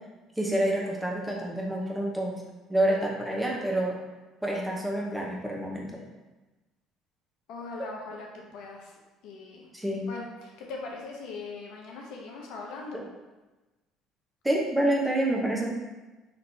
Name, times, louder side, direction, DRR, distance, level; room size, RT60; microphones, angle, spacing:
voice 1, 0.4-2.4 2.7-4.0 4.4-6.0 9.7-10.1 14.4-15.7, right 1 dB, 5° right, -2 dB, 0.9 m, -28 dB
voice 2, 7.5-8.9 9.2-9.7 10.1-13.0, left 3 dB, 70° left, -1 dB, 0.8 m, -40 dB
4.3 x 3.1 x 2.7 m, 1.1 s
supercardioid pair, 80°, 0 cm